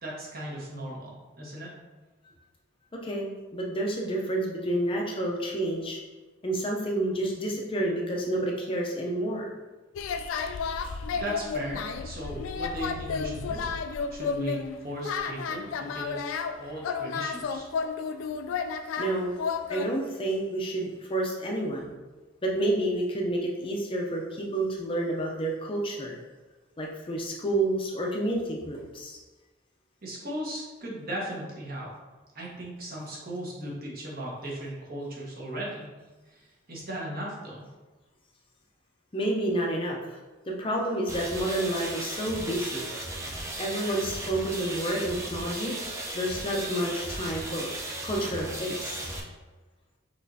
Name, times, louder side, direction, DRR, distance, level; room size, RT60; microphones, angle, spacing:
voice 1, 0.0-1.8 10.8-13.7 14.1-16.2 16.6-17.7 30.0-31.9 32.3-36.0 36.3-37.6, right 1 dB, 50° right, -4 dB, 1.2 m, -37 dB
voice 2, 3.0-6.0 6.4-9.5 10.8-10.9 19.0-19.3 19.7-21.9 22.4-26.1 26.8-29.2 39.1-40.2 40.5-42.9 43.6-45.8 46.1-47.7 48.0-49.1, right 1 dB, 25° left, -1 dB, 0.6 m, -29 dB
sound 1, 10.0-19.9, left 5 dB, 80° left, 0.3 m, -32 dB
sound 2, 41.1-49.2, right 1 dB, 15° right, 0.6 m, -36 dB
6.0 x 3.1 x 2.7 m, 1.2 s
head